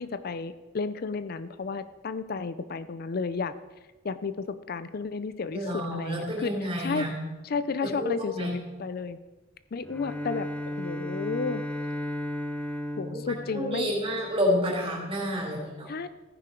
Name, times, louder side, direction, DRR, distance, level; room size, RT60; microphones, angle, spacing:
voice 1, 0.0-3.5 4.0-7.1 7.4-9.2 9.7-11.6 13.0-13.9 15.9-16.1, left 4 dB, 55° left, 14 dB, 0.5 m, -33 dB
voice 2, 5.5-7.1 7.8-8.5 13.0-13.2 13.5-15.9, equal, 30° right, -2 dB, 4.1 m, -29 dB
Bowed string instrument, 9.8-14.4, left 1 dB, 10° left, 0.7 m, -35 dB
14.5 x 10.0 x 4.5 m, 1.2 s
head